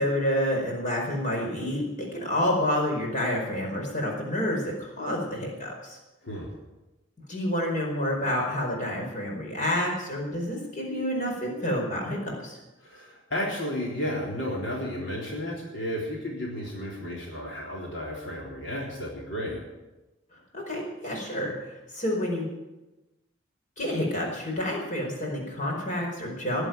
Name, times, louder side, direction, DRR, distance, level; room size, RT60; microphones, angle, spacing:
voice 1, 0.0-6.0 7.3-12.6 20.5-22.5 23.8-26.7, left 1 dB, 40° left, 0 dB, 4.8 m, -29 dB
voice 2, 12.8-19.6, left 1 dB, 65° left, -3 dB, 3.9 m, -33 dB
19.0 x 8.1 x 9.1 m, 1.1 s
head